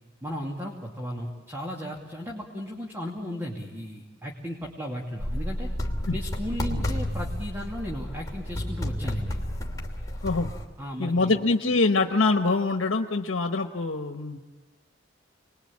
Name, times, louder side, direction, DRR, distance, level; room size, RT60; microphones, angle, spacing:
voice 1, 0.2-5.7 6.1-9.4 10.8-11.3, equal, 15° right, -1 dB, 2.6 m, -35 dB
sound 1, 5.2-10.7, left 1 dB, 20° left, 2.8 m, -31 dB
voice 2, 11.0-14.4, left 3 dB, 85° left, 6 dB, 1.1 m, -24 dB
28.5 x 21.0 x 8.6 m, 1.2 s
head